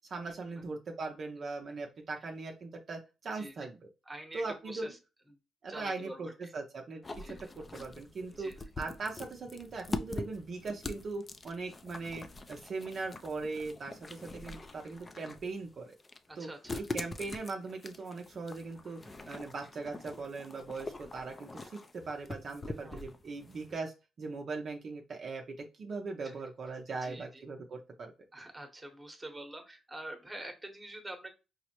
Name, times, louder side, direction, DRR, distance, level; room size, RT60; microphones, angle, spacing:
voice 1, 0.1-3.7 4.3-4.9 5.6-15.9 16.4-16.5 16.9-28.1, right 3 dB, 50° right, 1 dB, 0.6 m, -40 dB
voice 2, 3.3-3.7 4.0-5.0 5.3-5.4 5.7-6.5 7.2-7.5 8.4-8.6 16.3-16.8 22.8-23.1 26.2-26.4 26.9-27.4 28.3-31.3, right 1 dB, 10° right, 5 dB, 1.0 m, -46 dB
sound 1, 7.0-23.8, left 2 dB, 25° left, 0.4 m, -44 dB
4.8 x 2.0 x 2.9 m, 0.29 s
cardioid pair, 90°, 0 cm